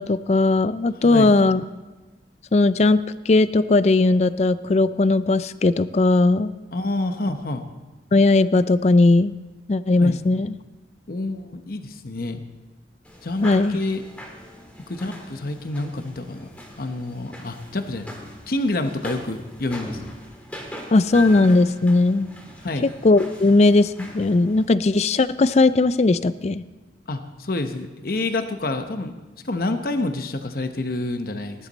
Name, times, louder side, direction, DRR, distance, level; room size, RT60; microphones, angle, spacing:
voice 1, 0.0-1.6 2.5-6.5 8.1-9.3 9.7-10.6 13.4-13.8 20.9-22.3 23.0-26.6, left 2 dB, 40° left, 15 dB, 0.4 m, -18 dB
voice 2, 6.7-7.7 10.0-10.2 11.1-12.4 13.2-14.0 14.9-16.5 16.8-18.1 18.5-20.0 22.6-22.9 27.1-29.1 29.4-31.7, left 2 dB, 55° left, 7 dB, 0.9 m, -28 dB
sound 1, 13.1-24.7, left 1 dB, 10° left, 2.1 m, -40 dB
19.0 x 11.5 x 4.1 m, 1.2 s
head